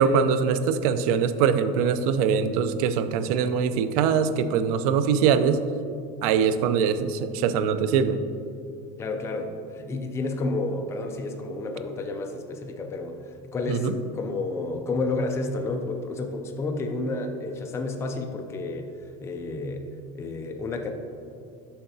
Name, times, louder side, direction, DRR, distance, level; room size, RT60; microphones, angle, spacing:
voice 1, 0.0-5.6 6.2-8.2 13.7-13.9, right 6 dB, 80° right, 12 dB, 0.4 m, -22 dB
voice 2, 9.0-19.9 20.1-20.9, left 2 dB, 15° left, 4 dB, 0.4 m, -31 dB
7.3 x 5.6 x 2.7 m, 2.4 s
supercardioid pair, 135°, 19 cm